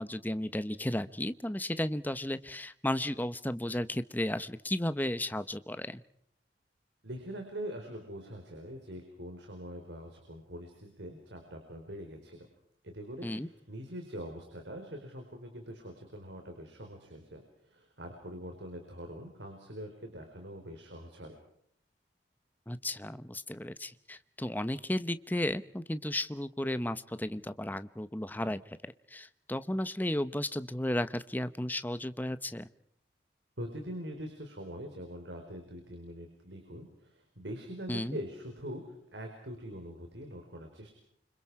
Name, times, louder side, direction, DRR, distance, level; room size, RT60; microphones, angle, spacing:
voice 1, 0.0-6.0 13.2-13.5 22.7-32.7 37.9-38.2, left 1 dB, 10° left, 13 dB, 0.9 m, -34 dB
voice 2, 7.0-12.5 12.8-21.3 33.6-38.8 39.1-40.9, equal, 70° right, 4 dB, 4.5 m, -43 dB
29.0 x 26.0 x 4.9 m, 0.69 s
head